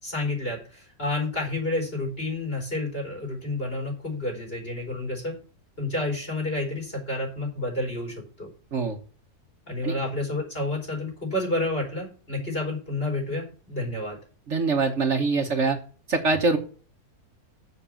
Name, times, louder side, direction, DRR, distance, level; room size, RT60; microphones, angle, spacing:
voice 1, 0.0-5.4 5.8-8.5 9.7-14.2, left 2 dB, 40° left, 0 dB, 4.8 m, -30 dB
voice 2, 14.5-15.8 16.1-16.6, right 4 dB, 55° right, 4 dB, 1.3 m, -23 dB
7.1 x 6.6 x 7.1 m, 0.40 s
omnidirectional pair, 1.6 m